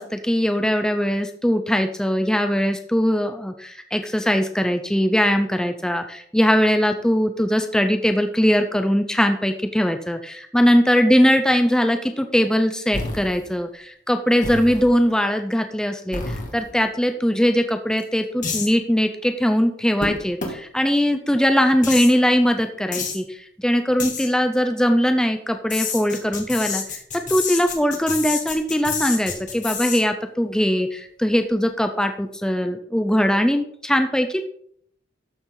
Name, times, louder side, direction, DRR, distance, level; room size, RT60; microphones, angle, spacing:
voice 1, 0.0-34.4, equal, 5° left, 6 dB, 0.6 m, -21 dB
sound 1, 12.9-13.5 14.4-15.0 16.1-16.8 18.0-18.1 18.4-18.7 20.0-20.1 20.4-20.5 21.8-22.1 22.9-23.2 24.0-24.3 25.7-30.0, left 5 dB, 40° left, 2.1 m, -28 dB
13.0 x 6.9 x 3.9 m, 0.65 s
head